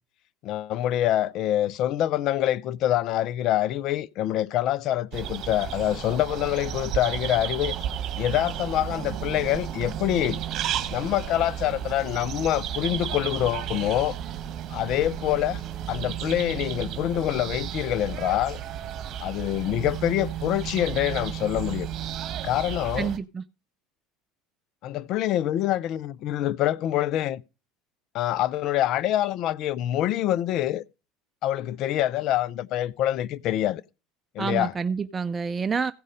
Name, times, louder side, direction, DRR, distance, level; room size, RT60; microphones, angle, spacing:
voice 1, 0.4-7.7 8.2-10.4 10.9-14.1 14.7-15.6 15.9-18.6 19.2-21.9 22.4-23.1 24.8-27.4 28.1-30.8 31.4-33.8 34.4-34.7, left 13 dB, 60° left, 0.5 m, -25 dB
sound 1, 5.1-23.2, right 10 dB, 50° right, 1.3 m, -33 dB
voice 2, 23.0-23.4 34.4-35.9, right 5 dB, 25° right, 0.4 m, -28 dB
15.5 x 5.3 x 5.1 m
hypercardioid pair, 80°, 0 cm